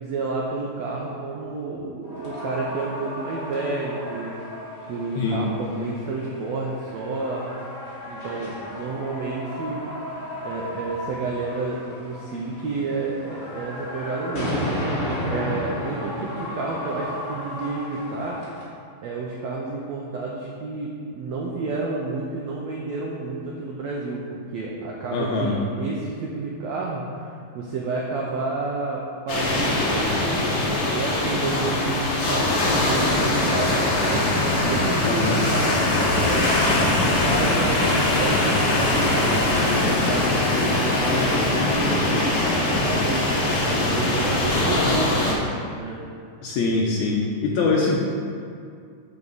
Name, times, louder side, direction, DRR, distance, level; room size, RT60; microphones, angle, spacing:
voice 1, 0.0-4.5 4.9-7.5 8.1-9.8 10.4-14.5 15.3-18.4 19.0-36.6 37.2-42.3 42.6-43.3 43.8-45.2 45.7-46.0, right 3 dB, 85° right, -3 dB, 1.5 m, -30 dB
sound 1, 2.0-18.6, left 1 dB, 30° left, 2.5 m, -33 dB
voice 2, 25.1-25.6 35.0-35.4 46.4-48.0, left 3 dB, 75° left, -2 dB, 1.8 m, -23 dB
sound 2, 29.3-45.3, left 2 dB, 50° left, 1.9 m, -22 dB
13.5 x 4.9 x 4.1 m, 2.3 s
omnidirectional pair, 4.1 m